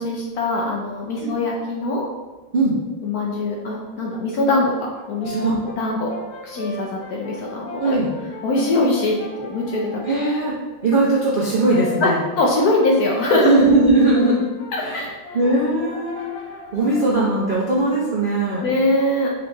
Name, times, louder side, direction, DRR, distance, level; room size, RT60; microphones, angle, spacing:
voice 1, 0.0-2.1 3.0-4.7 5.1-5.3 5.8-6.1 6.4-8.0 8.4-10.1 12.0-13.5 14.7-15.2 18.6-19.3, left 2 dB, 65° left, -1 dB, 1.0 m, -22 dB
Brass instrument, 4.9-10.5 11.4-17.3, left 2 dB, 85° left, 1.7 m, -38 dB
voice 2, 5.2-5.5 7.7-8.1 10.0-10.6 10.8-12.2 13.4-14.4 14.8-15.0 15.3-16.3 16.7-18.7, right 2 dB, 55° right, -7 dB, 0.5 m, -19 dB
5.1 x 3.0 x 3.4 m, 1.2 s
omnidirectional pair, 2.1 m